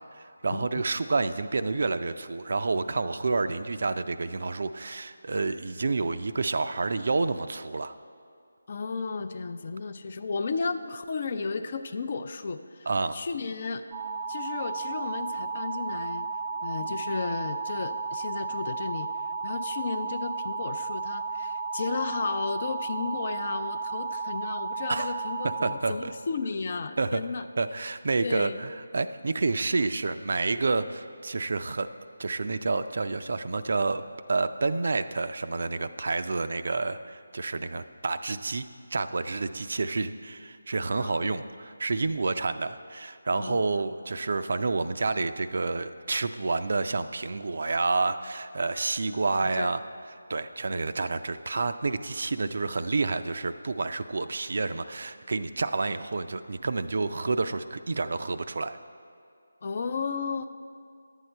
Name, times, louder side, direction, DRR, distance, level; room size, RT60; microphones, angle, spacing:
voice 1, 0.2-7.9 12.9-13.2 24.9-25.1 25.6-26.1 27.0-27.2 27.6-31.9 32.2-34.0 34.3-49.8 50.3-58.8, right 3 dB, 55° right, 11 dB, 0.4 m, -29 dB
voice 2, 8.7-13.8 14.3-16.3 16.6-19.1 19.4-27.4 28.2-28.6 41.0-41.3 43.4-43.6 49.4-49.7 59.6-60.5, left 4 dB, 40° left, 10 dB, 0.4 m, -33 dB
sound 1, 13.9-25.8, right 4 dB, 15° right, 0.6 m, -33 dB
11.0 x 8.1 x 4.4 m, 2.3 s
figure-of-eight pair, 165°, 0 cm